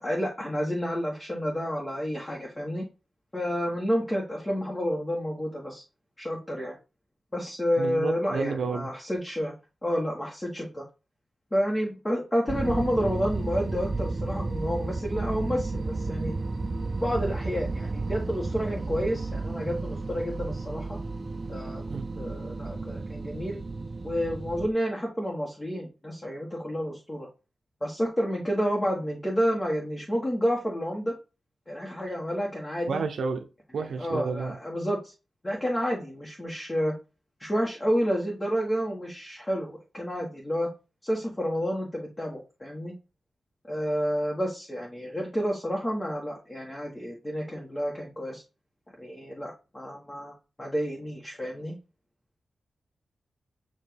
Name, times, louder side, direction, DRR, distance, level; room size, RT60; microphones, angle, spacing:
voice 1, 0.0-2.9 3.3-5.8 6.2-6.7 7.3-9.5 9.8-10.8 11.5-16.3 17.0-21.0 21.5-21.8 22.2-23.6 24.0-27.3 27.8-31.1 31.7-33.0 34.0-35.1 35.4-36.9 37.4-40.7 41.0-42.9 43.7-48.4 49.0-51.7, equal, 20° left, 1.5 m, -30 dB
voice 2, 7.8-8.9 21.9-22.1 32.9-33.5 33.7-34.6, right 4 dB, 80° right, 0.7 m, -30 dB
sound 1, 12.5-24.7, right 3 dB, 35° right, 0.7 m, -32 dB
7.1 x 2.9 x 4.7 m
wide cardioid pair, 115°, 0 cm